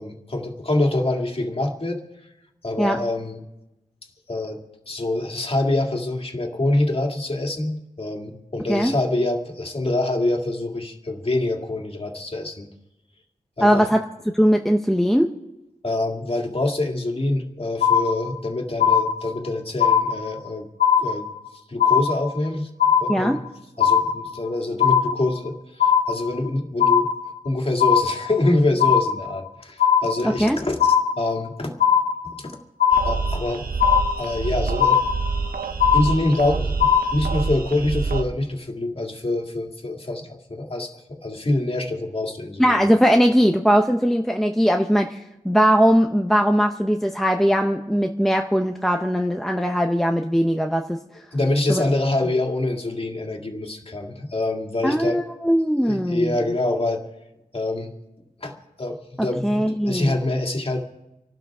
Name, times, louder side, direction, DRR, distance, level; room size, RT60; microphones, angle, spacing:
voice 1, 0.0-2.0 2.6-3.4 4.3-4.6 4.9-12.7 13.6-13.8 15.8-20.7 21.0-21.3 21.7-22.7 23.0-23.4 23.8-27.1 27.4-31.7 32.2-32.6 33.0-33.6 34.2-35.0 35.9-42.8 51.3-55.2 55.9-57.0 57.5-57.9 58.4-60.8, left 2 dB, 40° left, 1 dB, 2.3 m, -25 dB
voice 2, 13.6-14.0 14.3-15.3 23.1-23.4 30.2-30.6 42.6-51.0 51.7-51.8 54.8-56.4 59.2-60.1, equal, ahead, 3 dB, 0.8 m, -20 dB
sound 1, 17.8-18.5 18.8-19.5 19.8-20.5 20.8-21.5 21.8-22.5 22.8-23.5 23.8-24.5 24.8-25.5 25.8-26.5 26.8-27.5 27.8-28.5 28.8-29.5 29.8-30.5 30.8-31.5 31.8-32.5 32.8-33.5 33.8-34.5 34.8-35.5 35.8-36.5 36.8-37.5, left 8 dB, 70° left, 1.8 m, -19 dB
sound 2, 32.9-38.2, right 4 dB, 80° right, 1.0 m, -27 dB
28.0 x 12.0 x 3.6 m, 0.94 s
wide cardioid pair, 85°, 15 cm